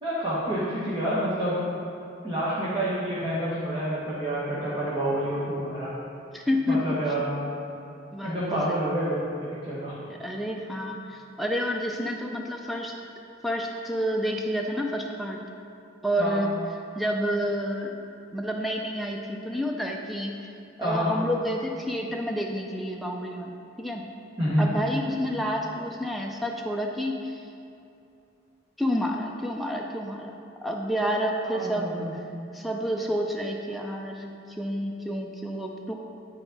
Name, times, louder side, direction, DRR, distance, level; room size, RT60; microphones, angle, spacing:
voice 1, 0.0-1.6 2.2-5.9 6.7-7.3 8.2-10.0 16.2-16.4 20.8-21.1 24.4-24.7 31.5-32.1, right 1 dB, 25° right, -11 dB, 1.2 m, -28 dB
voice 2, 6.3-7.0 8.1-8.7 10.1-13.0 13.4-15.4 16.0-16.5 17.0-18.0 18.3-20.3 20.8-24.1 24.6-27.5 28.8-30.4 30.6-32.2 32.5-35.9, equal, ahead, 1 dB, 0.3 m, -29 dB
8.4 x 4.9 x 3.8 m, 2.6 s
head